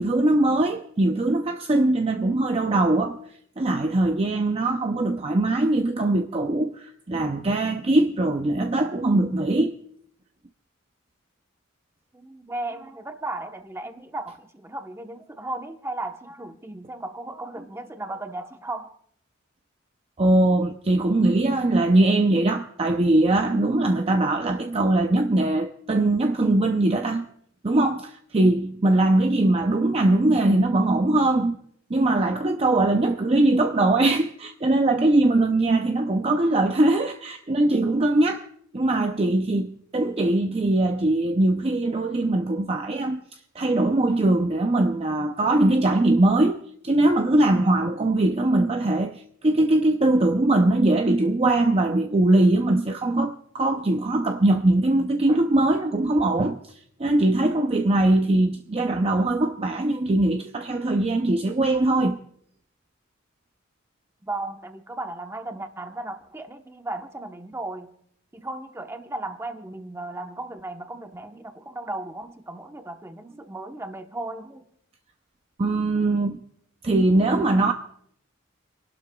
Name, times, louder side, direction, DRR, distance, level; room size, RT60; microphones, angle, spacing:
voice 1, 0.0-3.2 3.6-9.7 20.2-27.3 27.6-31.6 31.9-38.5 38.7-43.2 43.6-46.6 46.8-56.6 57.0-62.2 75.6-76.4 76.8-77.7, right 2 dB, 30° right, 0.5 m, -21 dB
voice 2, 12.1-18.9 36.2-36.8 64.2-67.9 68.3-74.7, right 2 dB, 15° right, 1.0 m, -35 dB
30.0 x 12.0 x 2.3 m
head